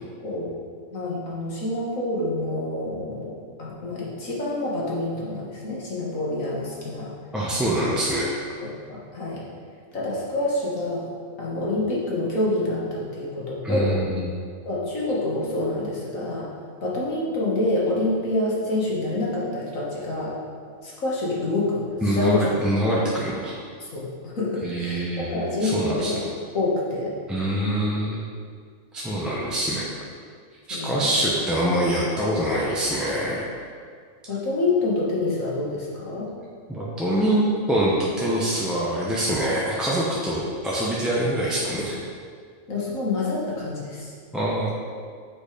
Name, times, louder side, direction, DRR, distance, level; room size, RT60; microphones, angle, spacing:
voice 1, 0.2-0.5 0.9-3.3 3.6-7.1 7.7-8.0 8.6-9.4 9.9-11.1 11.4-14.0 14.6-16.5 16.8-20.4 20.8-22.4 23.8-27.1 30.7-31.1 34.3-36.3 41.2-41.4 42.7-44.1, left 2 dB, 90° left, -5 dB, 2.1 m, -27 dB
voice 2, 7.3-8.3 13.6-14.3 22.0-23.5 24.6-26.1 27.3-28.2 28.9-29.9 30.7-33.5 36.7-42.0 44.3-44.7, right 1 dB, ahead, -7 dB, 0.8 m, -24 dB
7.1 x 4.8 x 5.1 m, 2.1 s
omnidirectional pair, 1.4 m